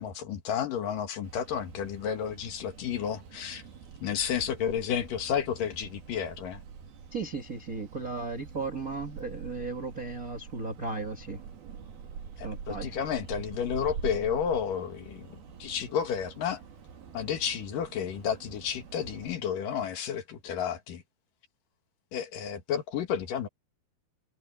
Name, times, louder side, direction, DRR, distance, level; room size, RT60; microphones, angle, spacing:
voice 1, 0.0-3.6 4.0-6.6 12.4-15.3 15.6-16.6 17.1-21.0 22.1-23.5, left 8 dB, 65° left, 3.1 m, -31 dB
sound 1, 1.2-19.4, right 6 dB, 75° right, 4.4 m, -45 dB
voice 2, 7.1-11.4 12.4-13.0, right 4 dB, 40° right, 1.2 m, -35 dB
omnidirectional pair, 4.4 m